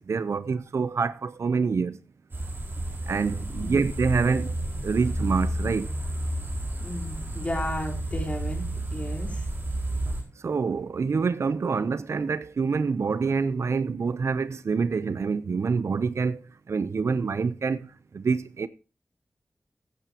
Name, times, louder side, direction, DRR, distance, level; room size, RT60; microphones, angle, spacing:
voice 1, 0.0-2.0 3.1-4.5 4.8-5.9 10.4-18.7, right 5 dB, 75° right, 0.6 m, -26 dB
sound 1, 2.3-10.2, right 1 dB, 50° right, 4.6 m, -31 dB
voice 2, 6.8-8.6 8.9-9.5, left 1 dB, 30° left, 4.7 m, -33 dB
15.5 x 9.1 x 2.9 m
wide cardioid pair, 80°, 5 cm